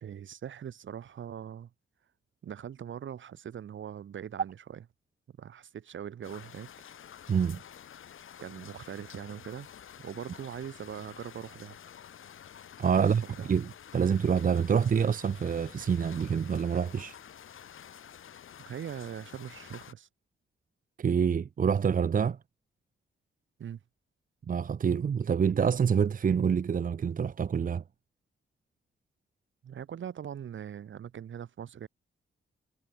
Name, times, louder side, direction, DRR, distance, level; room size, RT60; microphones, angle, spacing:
voice 1, 0.0-1.7 2.4-4.8 5.4-6.7 8.4-9.7 10.0-11.8 12.9-13.5 18.7-20.1 23.6-23.8 29.6-31.9, right 9 dB, 65° right, 1.9 m, -41 dB
sound 1, 6.2-19.9, left 9 dB, 75° left, 4.3 m, -50 dB
voice 2, 7.3-7.6 12.8-13.2 13.5-17.1 21.0-22.4 24.5-27.8, right 7 dB, 40° right, 0.8 m, -26 dB
wide cardioid pair, 150°, 21 cm